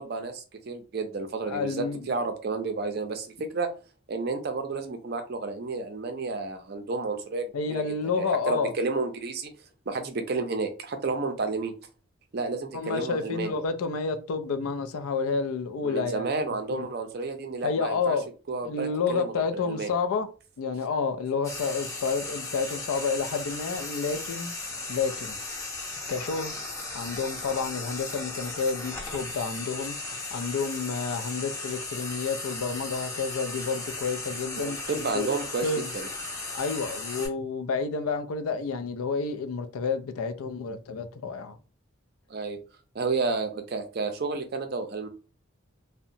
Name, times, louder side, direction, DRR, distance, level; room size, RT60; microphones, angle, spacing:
voice 1, 0.0-3.3 3.5-3.7 4.1-7.8 8.2-9.5 9.9-11.7 12.3-13.6 15.8-18.2 18.5-19.3 19.7-19.9 34.6-35.7 35.9-36.1 42.3-42.6 42.9-45.1, right 3 dB, 50° right, 0.4 m, -31 dB
voice 2, 1.4-2.1 7.5-8.7 12.7-16.3 16.7-16.9 17.6-18.3 18.7-20.3 20.6-24.5 24.9-25.4 26.1-26.6 26.9-30.0 30.3-35.3 35.6-35.9 36.5-41.6, left 4 dB, 90° left, 0.4 m, -30 dB
Frying (food), 21.4-37.3, left 2 dB, 15° left, 0.5 m, -36 dB
2.8 x 2.1 x 2.6 m
head